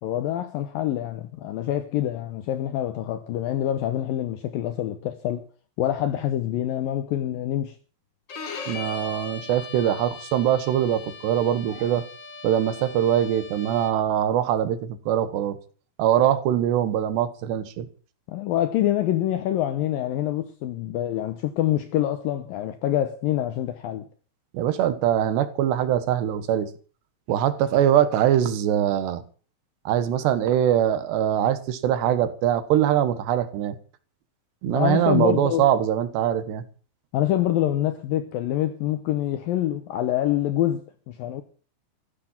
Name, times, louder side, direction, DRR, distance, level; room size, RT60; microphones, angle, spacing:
voice 1, 0.0-5.4 5.8-7.8 18.3-24.1 34.7-35.7 37.1-41.4, left 12 dB, 80° left, 2.1 m, -26 dB
Bowed string instrument, 8.3-14.1, left 4 dB, 60° left, 1.1 m, -39 dB
voice 2, 8.7-12.0 12.4-15.6 16.0-17.9 24.5-26.7 27.3-29.2 29.9-33.8 34.6-36.6, right 10 dB, 75° right, 3.3 m, -22 dB
15.0 x 10.0 x 7.4 m
omnidirectional pair, 5.1 m